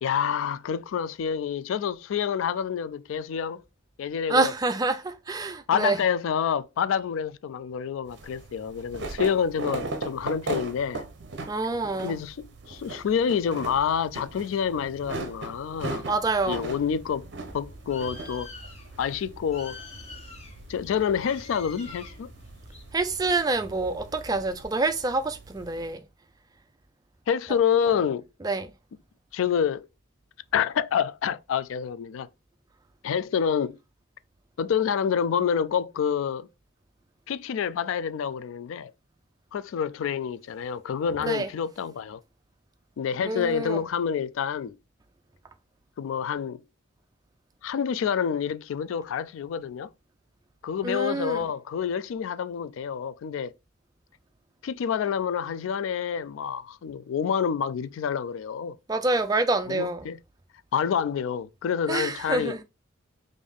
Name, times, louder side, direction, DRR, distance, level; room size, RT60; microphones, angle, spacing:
voice 1, 0.0-3.6 4.0-4.5 5.7-11.0 12.0-16.1 16.5-17.3 17.5-18.5 19.0-19.8 20.7-22.3 27.3-28.2 29.3-29.9 30.5-32.3 33.0-33.8 34.6-36.5 37.3-38.9 39.5-42.2 43.0-44.8 46.0-46.6 47.6-49.9 50.6-53.5 54.6-58.7 59.7-60.2 60.7-62.5, left 7 dB, 75° left, 0.3 m, -28 dB
voice 2, 4.3-6.0 11.5-12.2 16.0-16.6 22.9-26.0 28.4-28.7 41.2-41.5 43.2-43.8 50.8-51.4 58.9-60.1 61.9-62.6, right 3 dB, 20° right, 0.3 m, -27 dB
sound 1, 8.1-25.9, right 3 dB, 60° right, 0.6 m, -39 dB
Bird, 15.7-24.6, left 2 dB, 30° left, 0.9 m, -46 dB
3.5 x 2.6 x 3.6 m
head